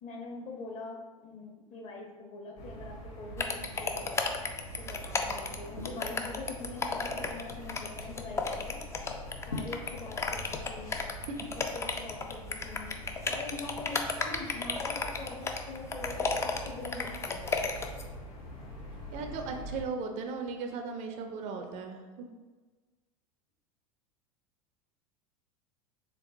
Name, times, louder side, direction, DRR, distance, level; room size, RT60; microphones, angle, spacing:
voice 1, 0.0-4.1 4.8-8.8 9.5-11.0 11.7-17.5 21.6-21.7, left 3 dB, 40° left, 1 dB, 0.9 m, -43 dB
sound 1, 2.6-19.8, equal, 55° left, 1.5 m, -45 dB
sound 2, 3.4-18.0, left 4 dB, 15° left, 0.3 m, -33 dB
Liquid, 4.6-11.3, left 2 dB, 85° left, 0.7 m, -47 dB
voice 2, 19.1-22.3, right 4 dB, 40° right, 5 dB, 0.5 m, -37 dB
4.4 x 3.4 x 2.6 m, 1.3 s
figure-of-eight pair, 80°, 19 cm